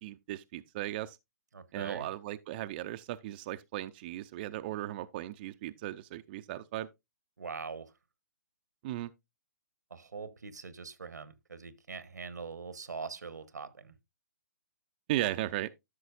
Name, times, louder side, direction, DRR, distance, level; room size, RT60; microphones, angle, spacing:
voice 1, 0.0-1.2 1.7-6.9 8.8-9.1 15.1-15.7, right 14 dB, 35° right, 0.4 m, -36 dB
voice 2, 1.5-2.1 7.4-7.9 9.9-13.9, right 5 dB, 85° right, 1.0 m, -42 dB
13.0 x 6.2 x 2.4 m
hypercardioid pair, 135°, 9 cm